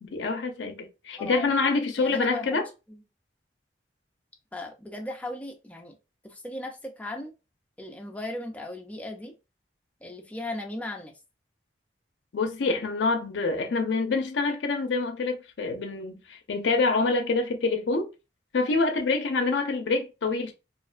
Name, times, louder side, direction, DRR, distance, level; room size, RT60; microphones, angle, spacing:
voice 1, 0.0-2.7 12.3-18.1 18.5-20.5, left 3 dB, 75° left, 0.4 m, -26 dB
voice 2, 1.2-1.5 2.0-2.6 2.9-3.0 4.5-5.9 6.2-7.3 7.8-9.3 10.0-11.1, left 1 dB, 10° left, 0.4 m, -37 dB
2.4 x 2.1 x 2.4 m
head